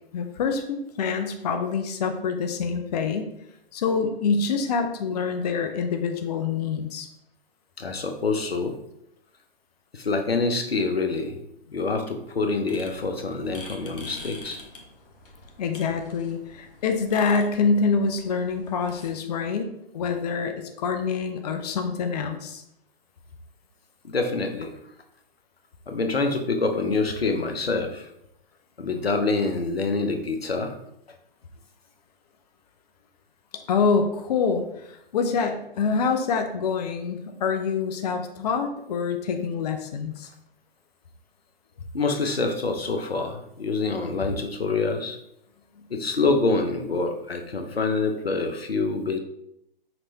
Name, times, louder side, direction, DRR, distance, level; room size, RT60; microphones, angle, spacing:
voice 1, 0.1-3.2 3.7-7.1 15.6-19.7 19.9-22.6 33.7-40.3, left 5 dB, 45° left, 6 dB, 0.5 m, -26 dB
voice 2, 7.8-8.7 9.9-11.4 11.7-14.6 24.0-24.7 25.9-28.1 28.8-30.8 41.9-45.2 45.9-49.2, left 3 dB, 90° left, 5 dB, 0.8 m, -26 dB
sound 1, 12.7-19.1, left 2 dB, 65° left, 1.2 m, -45 dB
5.9 x 3.2 x 2.8 m, 0.78 s
figure-of-eight pair, 130°, 29 cm